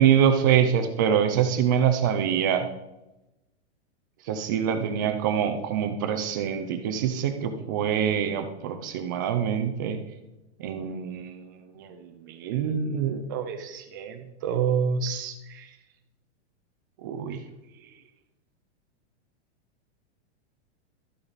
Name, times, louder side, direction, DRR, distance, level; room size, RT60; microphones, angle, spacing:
voice 1, 0.0-2.7 4.3-10.0 10.6-11.4 11.8-11.9 12.4-15.3 17.0-17.4, right 8 dB, 20° right, 7 dB, 0.3 m, -25 dB
12.5 x 8.8 x 4.0 m, 0.95 s
supercardioid pair, 165°, 34 cm